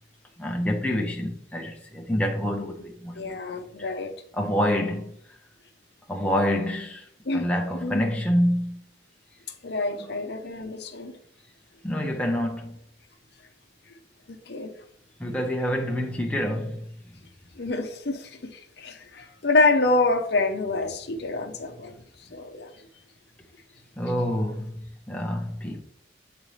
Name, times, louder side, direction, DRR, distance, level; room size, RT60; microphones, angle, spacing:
voice 1, 0.4-3.2 4.4-5.1 6.1-7.0 7.3-8.8 11.8-12.8 15.2-16.8 24.0-24.7 25.1-25.8, equal, 5° left, 0.7 m, -27 dB
voice 2, 3.1-4.1 7.2-7.5 7.8-8.1 9.6-11.1 14.3-14.7 17.6-22.7, left 3 dB, 60° left, 0.7 m, -27 dB
8.9 x 4.0 x 3.2 m
head